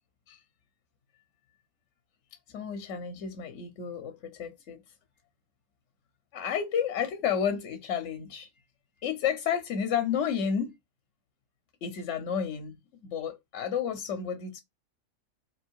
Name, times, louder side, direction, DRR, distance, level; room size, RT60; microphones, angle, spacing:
voice 1, 2.5-4.8 6.3-8.5 9.0-10.7 11.8-12.8 13.0-14.6, left 7 dB, 65° left, 0.9 m, -31 dB
3.3 x 2.5 x 4.4 m
omnidirectional pair, 1.3 m